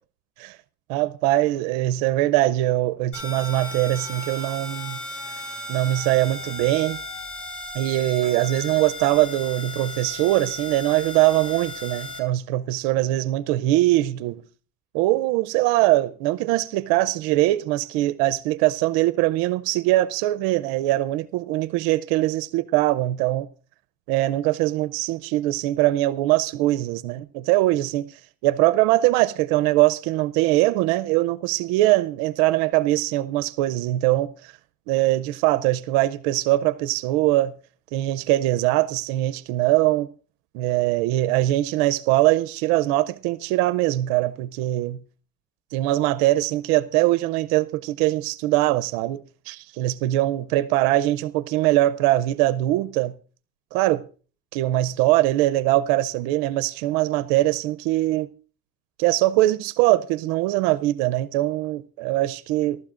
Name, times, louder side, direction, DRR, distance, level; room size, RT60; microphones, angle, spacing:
voice 1, 0.9-5.0 5.7-7.0 7.7-14.4 14.9-23.5 24.1-34.5 34.9-37.5 37.9-40.1 40.5-45.0 45.7-53.1 53.7-54.0 54.5-58.3 59.0-62.8, right 16 dB, 85° right, 0.6 m, -22 dB
sound 1, 3.1-12.2, left 1 dB, 45° left, 4.8 m, -36 dB
27.0 x 12.5 x 2.5 m
supercardioid pair, 105°, 30 cm